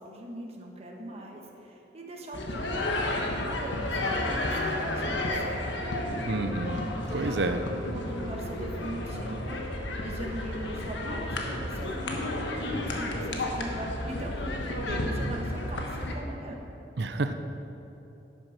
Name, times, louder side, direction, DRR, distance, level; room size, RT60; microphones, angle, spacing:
voice 1, 0.0-5.7 7.0-7.5 7.9-9.7 10.0-16.6, right 1 dB, 35° right, 0 dB, 1.4 m, -40 dB
sound 1, 2.3-16.1, left 1 dB, 80° left, 1.4 m, -32 dB
voice 2, 6.3-6.8 7.1-7.6 17.0-17.3, right 3 dB, 65° right, 8 dB, 0.6 m, -29 dB
11.0 x 9.3 x 5.9 m, 2.9 s
head